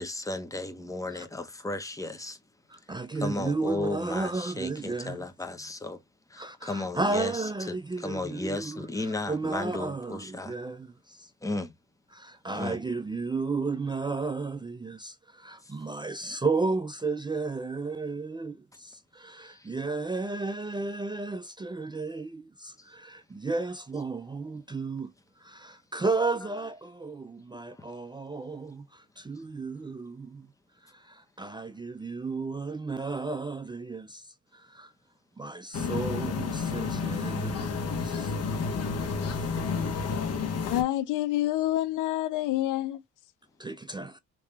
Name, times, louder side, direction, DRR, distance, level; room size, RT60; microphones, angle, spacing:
voice 1, 0.0-2.4 2.8-2.9 3.2-6.0 6.3-10.6 11.4-11.7 12.5-12.8 15.6-15.7 19.4-19.7 22.8-22.9 27.7-27.8 29.3-29.4, left 2 dB, 10° left, 0.9 m, -35 dB
voice 2, 2.7-5.3 6.4-11.3 12.1-25.1 25.4-30.5 30.8-34.9 35.4-38.3 38.7-38.8 39.4-39.5 43.6-44.2, right 3 dB, 15° right, 0.4 m, -33 dB
sound 1, 35.7-40.8, left 5 dB, 55° left, 1.1 m, -30 dB
voice 3, 40.7-43.0, left 14 dB, 85° left, 0.6 m, -27 dB
3.3 x 2.8 x 3.3 m
cardioid pair, 90°, 30 cm